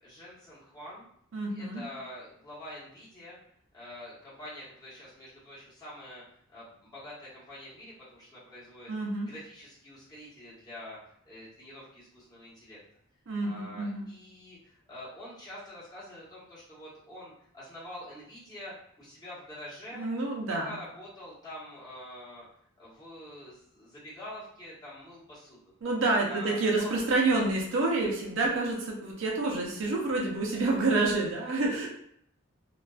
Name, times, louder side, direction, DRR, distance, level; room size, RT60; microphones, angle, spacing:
voice 1, 0.0-1.1 1.5-3.4 3.7-6.2 6.5-8.9 9.3-11.0 11.2-12.8 13.4-20.1 20.6-22.5 22.8-25.7 26.3-26.9, left 1 dB, 20° left, -9 dB, 1.0 m, -46 dB
voice 2, 1.3-1.8 8.9-9.3 13.3-14.1 19.9-20.8 25.8-31.9, right 2 dB, 70° right, -2 dB, 0.6 m, -28 dB
2.4 x 2.2 x 2.3 m, 0.69 s
head